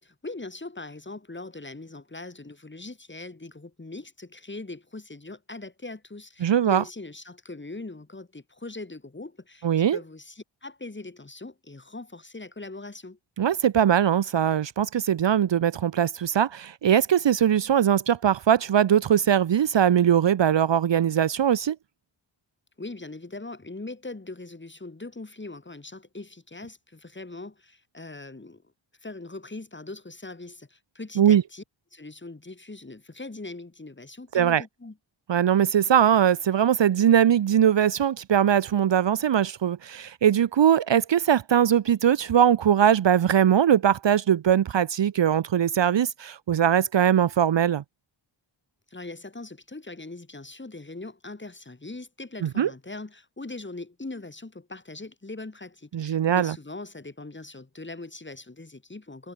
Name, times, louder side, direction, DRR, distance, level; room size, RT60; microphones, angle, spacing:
voice 1, 0.0-13.2 22.8-28.6 29.0-31.6 31.9-35.0 48.9-59.3, left 2 dB, 20° left, 3.8 m, -41 dB
voice 2, 6.4-6.8 9.6-10.0 13.4-21.8 31.2-31.4 34.3-34.6 35.3-47.8 52.4-52.7 55.9-56.5, right 9 dB, 60° right, 0.9 m, -21 dB
wide cardioid pair, 90°, 49 cm